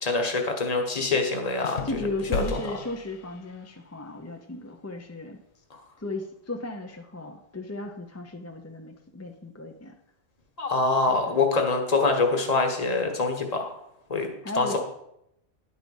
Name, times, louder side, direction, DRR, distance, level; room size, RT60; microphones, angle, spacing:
voice 1, 0.0-1.8 2.3-2.6 10.6-13.7 14.1-14.8, left 3 dB, 35° left, 3 dB, 1.3 m, -25 dB
sound 1, 1.6-3.8, left 4 dB, 75° left, 0.9 m, -35 dB
voice 2, 1.8-5.4 6.0-9.9 11.3-11.4 14.4-14.8, left 2 dB, 20° left, 3 dB, 0.4 m, -35 dB
10.5 x 4.8 x 5.3 m, 0.80 s
omnidirectional pair, 1.1 m